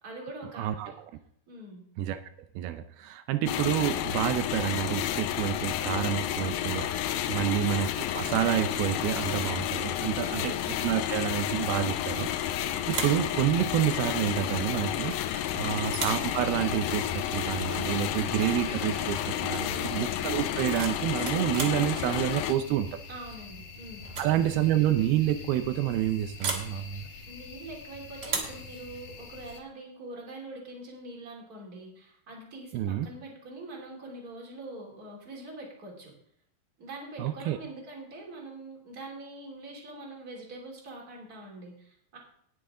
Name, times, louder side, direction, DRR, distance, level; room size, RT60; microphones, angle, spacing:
voice 1, 0.0-0.7 1.5-1.8 7.3-7.6 10.3-10.6 15.5-15.8 19.5-19.9 23.1-24.0 27.3-36.1 36.8-42.2, right 2 dB, 25° right, -1 dB, 3.1 m, -44 dB
voice 2, 0.6-0.9 2.0-2.2 2.6-6.9 7.3-12.3 12.9-15.1 15.5-22.9 24.2-27.1 32.7-33.1 37.2-37.6, right 12 dB, 85° right, 9 dB, 2.6 m, -28 dB
sound 1, 3.5-22.5, left 11 dB, 80° left, 2.5 m, -31 dB
sound 2, 12.2-12.5 12.8-13.3 15.1-15.5 15.8-16.3 18.1-18.3 18.6-19.0 20.4-21.8 23.3-23.6 24.0-24.4 24.6-24.7 26.4-26.7 28.2-28.6, right 4 dB, 60° right, 1.0 m, -35 dB
sound 3, 16.2-29.6, left 4 dB, 60° left, 2.5 m, -45 dB
18.5 x 6.8 x 3.7 m, 0.68 s
omnidirectional pair, 4.4 m